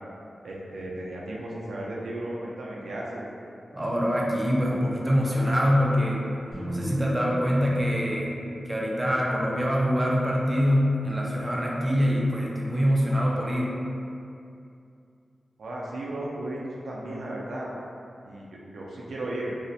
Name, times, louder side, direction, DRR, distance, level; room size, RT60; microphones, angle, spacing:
voice 1, 0.4-3.2 15.6-17.7 18.2-19.5, right 1 dB, 85° right, -4 dB, 0.4 m, -35 dB
voice 2, 3.7-6.3 6.7-8.4 8.7-13.8, equal, 15° right, -3 dB, 0.3 m, -24 dB
sound 1, 6.5-10.7, equal, 55° left, 0.9 m, -36 dB
2.3 x 2.1 x 2.6 m, 2.5 s
wide cardioid pair, 95°, 0 cm